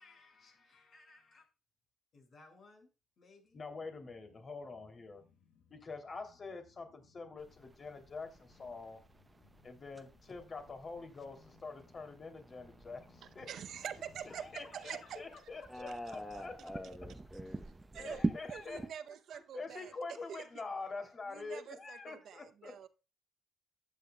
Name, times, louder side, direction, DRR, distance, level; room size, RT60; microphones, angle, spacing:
voice 1, 0.0-1.4 2.1-3.6 13.6-15.9 16.4-16.5 18.7-20.0, left 3 dB, 55° left, 5.6 m, -61 dB
sound 1, 3.5-16.7 17.0-17.1, left 6 dB, 90° left, 1.4 m, -67 dB
voice 2, 3.5-5.2 5.7-9.0 9.6-13.5 14.4-16.5 17.9-18.8 19.5-22.8, left 4 dB, 40° left, 2.9 m, -45 dB
sound 2, 7.4-18.9, right 2 dB, 20° right, 0.8 m, -45 dB
voice 3, 13.5-15.2 15.9-16.0 17.9-19.9 20.3-20.4 21.3-22.9, right 9 dB, 70° right, 0.7 m, -46 dB
voice 4, 15.7-18.1, left 1 dB, 5° left, 1.0 m, -46 dB
14.0 x 9.3 x 2.3 m
cardioid pair, 90°, 0 cm